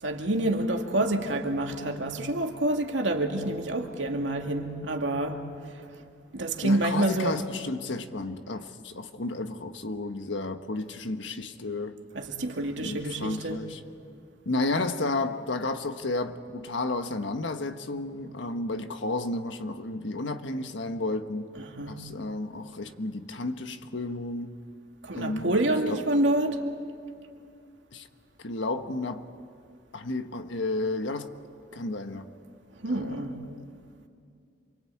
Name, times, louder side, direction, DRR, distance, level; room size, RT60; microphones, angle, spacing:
voice 1, 0.0-5.8 6.3-7.4 12.1-13.6 21.7-22.1 25.0-26.7 32.8-33.4, right 1 dB, 90° right, 2.4 m, -28 dB
voice 2, 6.6-12.0 12.8-13.8 14.4-21.5 21.9-24.6 25.1-25.6 25.9-26.0 27.9-28.1 28.4-29.3 29.9-31.3 31.7-32.3 32.9-33.6, left 2 dB, 90° left, 1.4 m, -32 dB
28.0 x 24.0 x 8.6 m
head